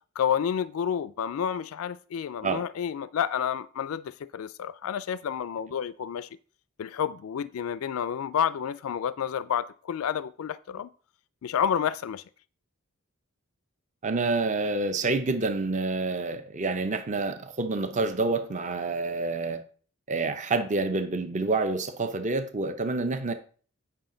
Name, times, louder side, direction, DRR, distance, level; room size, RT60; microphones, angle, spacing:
voice 1, 0.2-6.3 6.8-10.9 11.4-12.2, left 8 dB, 80° left, 0.4 m, -30 dB
voice 2, 14.0-19.6 20.1-23.3, right 3 dB, 35° right, 0.7 m, -28 dB
8.9 x 5.7 x 3.8 m
head